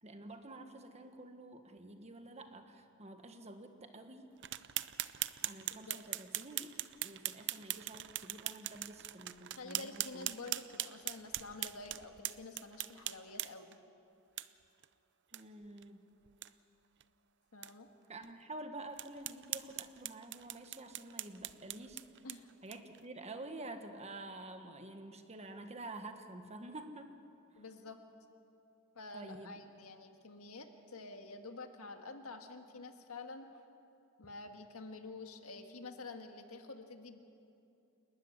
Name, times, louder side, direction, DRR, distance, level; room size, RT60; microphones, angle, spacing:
voice 1, 0.0-4.3 5.4-6.7 7.0-10.3 15.3-16.1 18.1-22.0 22.6-27.1 27.5-27.6 29.1-29.6, right 2 dB, 30° right, 6 dB, 1.4 m, -49 dB
sound 1, 4.4-13.8 14.4-14.5 14.8-14.9 15.3-15.4 15.8-15.9 16.3-16.5 17.0-17.1 17.6-17.7 18.2-18.3 19.0-23.0, right 14 dB, 55° right, 0.6 m, -41 dB
voice 2, 9.5-13.8 17.5-17.9 22.2-22.5 27.5-28.0 29.0-33.5 34.2-37.2, left 3 dB, 80° left, 5 dB, 1.8 m, -49 dB
29.0 x 12.5 x 9.8 m, 2.7 s
head